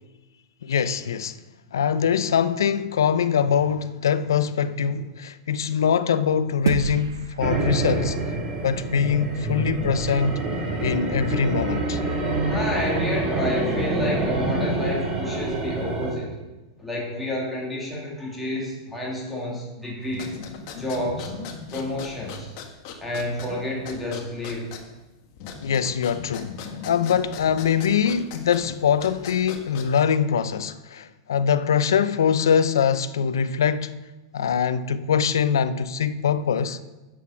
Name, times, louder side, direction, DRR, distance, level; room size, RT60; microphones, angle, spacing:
voice 1, 0.6-1.4 1.7-8.2 8.6-10.4 10.8-12.0 25.6-33.9 34.3-36.8, left 7 dB, 85° left, 0.6 m, -23 dB
sound 1, 6.7-9.3, right 8 dB, 90° right, 0.5 m, -31 dB
sound 2, 7.4-16.1, right 2 dB, 25° right, 2.6 m, -26 dB
voice 2, 12.5-16.3 16.8-20.4 20.8-21.3 21.7-22.5 23.0-24.7, left 1 dB, 5° left, 2.8 m, -30 dB
sound 3, 20.1-30.1, left 5 dB, 50° left, 1.6 m, -39 dB
9.4 x 7.8 x 5.8 m
hypercardioid pair, 120°, 2 cm